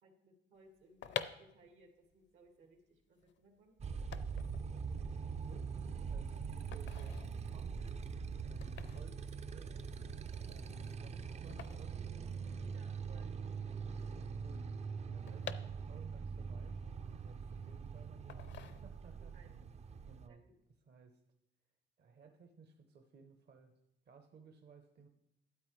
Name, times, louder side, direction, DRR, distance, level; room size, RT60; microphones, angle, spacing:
voice 1, 0.0-3.8 9.5-9.8 12.7-13.3 15.2-15.4 19.3-19.5 20.3-20.6, right 2 dB, 85° right, 3 dB, 2.0 m, -64 dB
sound 1, 0.8-12.9 13.2-13.3 13.4-16.3 16.7-17.7 18.3-19.3 19.6-19.9, left 9 dB, 65° left, 0.6 m, -49 dB
Motorcycle, 3.8-20.3, right 5 dB, 35° right, 0.4 m, -43 dB
voice 2, 4.9-5.7 6.0-7.2 7.5-9.4 10.5-13.3 14.1-15.6 15.9-16.8 17.2-19.7 20.0-20.4 20.9-21.2 22.0-23.7 24.0-25.1, right 5 dB, 55° right, 5 dB, 0.9 m, -60 dB
13.0 x 8.3 x 3.2 m, 0.84 s
cardioid pair, 90°, 20 cm